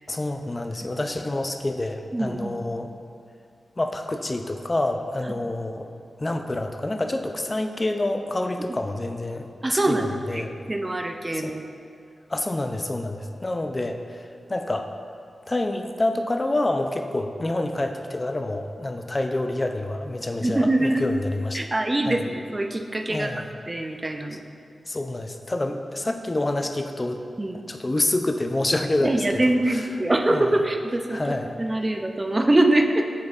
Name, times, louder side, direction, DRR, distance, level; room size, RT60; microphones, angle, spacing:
voice 1, 0.1-2.9 3.8-5.9 6.2-10.5 11.4-11.5 12.3-14.0 14.5-14.9 15.5-21.6 22.1-22.2 23.1-23.5 24.9-27.2 27.7-29.1 29.7-29.8 30.3-30.5 31.1-31.5, left 2 dB, 35° left, 6 dB, 0.4 m, -27 dB
voice 2, 2.1-2.6 9.6-11.6 20.4-21.2 21.5-24.4 26.1-26.2 27.4-27.6 29.0-33.1, right 1 dB, 30° right, 4 dB, 0.5 m, -24 dB
7.8 x 5.2 x 2.4 m, 2.3 s
cardioid pair, 50°, 0 cm